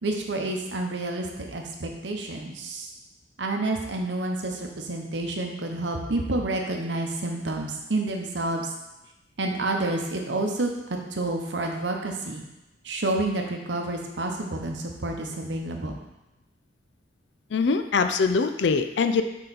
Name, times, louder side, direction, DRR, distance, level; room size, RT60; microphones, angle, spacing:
voice 1, 0.0-2.9 3.4-8.7 9.4-10.7 11.1-12.4 12.8-16.0, right 2 dB, 75° right, 2 dB, 0.9 m, -29 dB
voice 2, 17.5-19.2, left 4 dB, 70° left, 8 dB, 0.4 m, -23 dB
6.5 x 3.9 x 4.1 m, 0.97 s
head